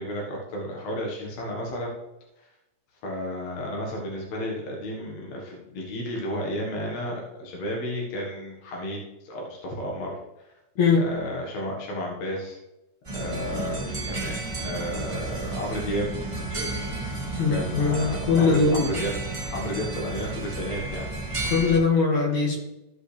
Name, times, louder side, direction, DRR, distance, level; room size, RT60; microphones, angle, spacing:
voice 1, 0.0-1.9 2.4-2.5 3.0-10.2 11.0-12.6 13.1-16.1 17.5-19.2 19.5-21.1, equal, 65° left, -2 dB, 2.7 m, -32 dB
sound 1, 13.0-21.8, right 2 dB, 20° right, 0.8 m, -32 dB
voice 2, 17.4-18.9 21.4-22.6, left 4 dB, 80° left, -2 dB, 3.5 m, -21 dB
15.0 x 5.4 x 3.4 m, 0.94 s
omnidirectional pair, 3.3 m